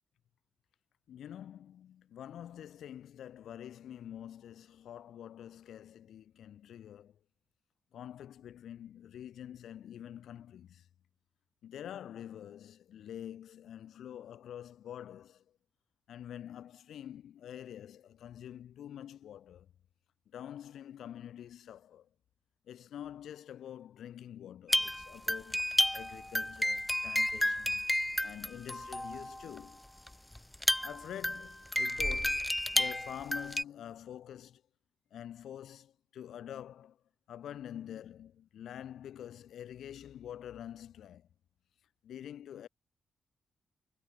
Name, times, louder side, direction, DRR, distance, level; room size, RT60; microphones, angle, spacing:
voice 1, 1.1-7.2 7.9-10.9 11.6-15.4 16.1-19.7 20.3-22.1 22.7-25.6 25.9-27.8 28.2-29.8 30.8-34.6 35.1-37.0 37.3-41.3 42.0-42.7, left 10 dB, 85° left, 7.7 m, -46 dB
sound 1, 24.7-29.6 30.1-30.2 30.3-33.6, left 1 dB, 5° left, 0.9 m, -32 dB
cardioid pair, 115°, 0 cm